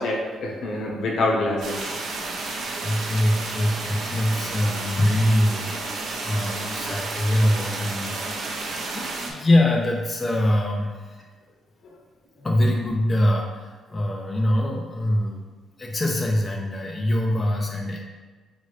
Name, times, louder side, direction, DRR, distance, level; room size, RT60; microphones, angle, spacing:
voice 1, 0.0-1.9 2.5-2.6 4.4-4.5, left 2 dB, 70° left, -2 dB, 1.0 m, -26 dB
sound 1, 1.6-9.3, right 3 dB, 65° right, 0.7 m, -31 dB
voice 2, 2.8-8.3 8.9-11.2 12.4-15.5 15.8-18.0, left 1 dB, 25° left, -1 dB, 0.6 m, -23 dB
4.9 x 2.6 x 3.3 m, 1.3 s
cardioid pair, 90°, 0 cm